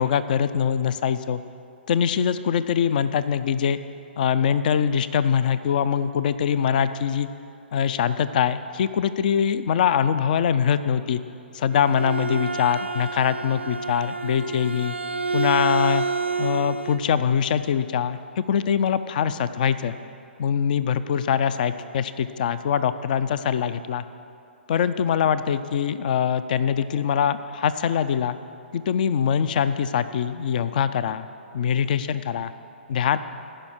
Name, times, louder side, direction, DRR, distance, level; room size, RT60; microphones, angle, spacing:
voice 1, 0.0-1.4 1.9-3.8 4.2-7.3 7.7-11.2 11.5-15.0 15.3-16.0 16.4-19.9 20.4-24.0 24.7-28.4 28.7-31.3 31.5-32.5 32.9-33.2, left 8 dB, 50° left, 14 dB, 0.4 m, -23 dB
Bowed string instrument, 11.5-17.1, right 4 dB, 85° right, 0.4 m, -28 dB
15.0 x 5.5 x 6.0 m, 2.6 s
figure-of-eight pair, 120°, 6 cm